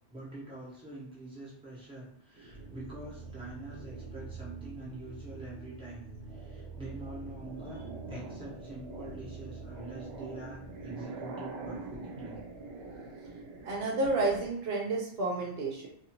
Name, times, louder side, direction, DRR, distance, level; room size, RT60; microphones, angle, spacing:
voice 1, 0.1-12.4, right 2 dB, 5° right, -7 dB, 0.8 m, -45 dB
sound 1, 2.3-4.3 4.9-5.3 5.7-14.5, right 2 dB, 90° right, 0.9 m, -45 dB
sound 2, 2.5-11.0, right 4 dB, 60° left, 0.7 m, -46 dB
voice 2, 13.6-15.9, right 2 dB, 65° right, -2 dB, 0.8 m, -30 dB
2.6 x 2.4 x 2.8 m, 0.68 s
omnidirectional pair, 1.1 m